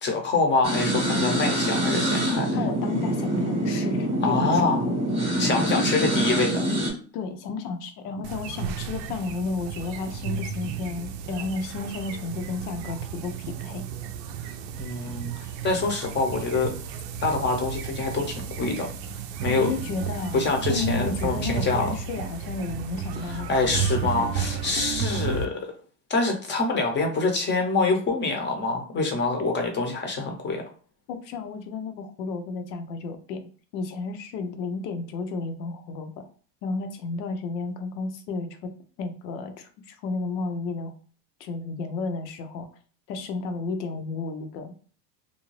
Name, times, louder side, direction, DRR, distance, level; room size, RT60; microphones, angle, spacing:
voice 1, 0.0-2.5 4.2-4.8 5.4-6.6 14.7-15.3 15.6-16.7 17.2-18.9 19.4-19.7 20.3-21.9 23.3-25.7 26.1-30.6, left 3 dB, 25° left, 2 dB, 0.7 m, -25 dB
sound 1, 0.6-6.9, right 1 dB, 15° right, 0.9 m, -25 dB
voice 2, 2.5-5.0 5.7-5.8 7.1-13.3 13.6-13.9 19.5-20.4 20.7-23.9 24.2-24.5 31.1-33.4 33.7-36.3 36.6-38.7 39.0-40.9 41.4-42.7 43.1-44.7, left 4 dB, 80° left, 7 dB, 0.8 m, -32 dB
sound 2, 8.2-25.4, right 7 dB, 85° right, 0.6 m, -33 dB
2.6 x 2.2 x 3.0 m, 0.41 s
supercardioid pair, 125°, 49 cm